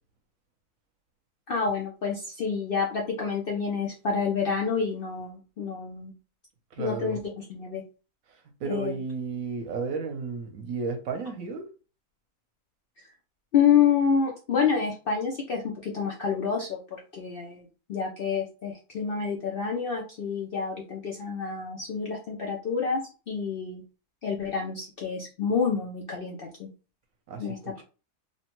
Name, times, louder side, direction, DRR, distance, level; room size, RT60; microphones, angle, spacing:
voice 1, 1.5-6.1 6.8-7.8 8.6-8.9 13.5-23.0 23.3-23.8 24.2-26.7 27.4-27.8, left 6 dB, 75° left, 0.5 m, -28 dB
voice 2, 6.7-7.2 8.3-11.7 27.3-27.8, right 4 dB, 70° right, 1.0 m, -33 dB
3.1 x 2.1 x 2.9 m
omnidirectional pair, 1.6 m